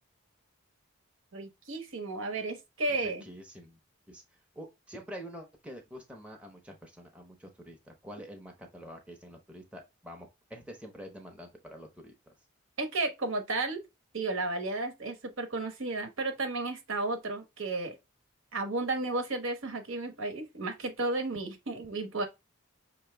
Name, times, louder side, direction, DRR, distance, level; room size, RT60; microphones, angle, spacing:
voice 1, 1.3-3.2 12.8-13.8 14.1-18.0 18.5-22.3, right 2 dB, 75° right, 1.1 m, -33 dB
voice 2, 3.0-3.8 4.1-12.3, equal, 5° right, 0.7 m, -47 dB
5.6 x 2.9 x 3.3 m
head